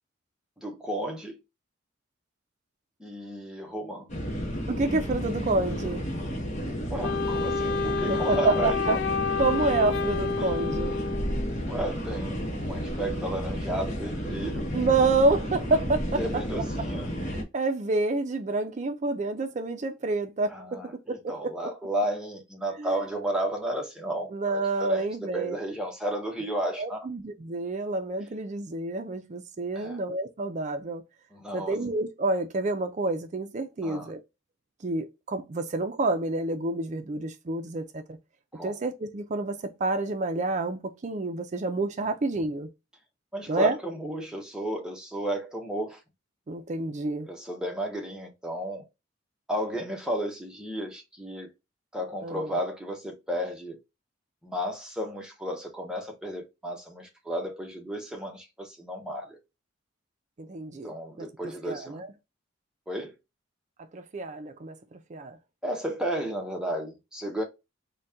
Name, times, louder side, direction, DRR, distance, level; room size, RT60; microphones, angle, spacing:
voice 1, 0.6-1.4 3.0-4.1 6.8-9.0 10.4-10.5 11.7-12.4 12.7-14.7 16.1-17.1 20.5-27.1 29.7-30.0 31.3-31.8 33.8-34.1 38.5-38.8 43.3-46.0 47.3-48.8 49.5-51.5 51.9-53.8 54.4-59.4 60.8-62.0 62.9-63.2 65.6-67.4, right 1 dB, 5° right, 0.8 m, -33 dB
sound 1, 4.1-17.4, equal, 40° left, 0.9 m, -32 dB
voice 2, 4.7-6.0 8.0-9.0 9.4-11.0 14.7-16.2 17.3-20.8 21.1-21.2 22.8-22.9 24.3-25.6 26.8-31.0 31.5-34.2 34.8-38.2 38.6-42.7 43.5-43.8 46.5-47.3 52.2-52.4 60.4-61.3 61.6-62.1 63.9-65.4, right 3 dB, 40° right, 0.4 m, -28 dB
Wind instrument woodwind instrument, 7.0-11.6, left 5 dB, 65° left, 0.3 m, -29 dB
4.0 x 2.2 x 3.4 m
head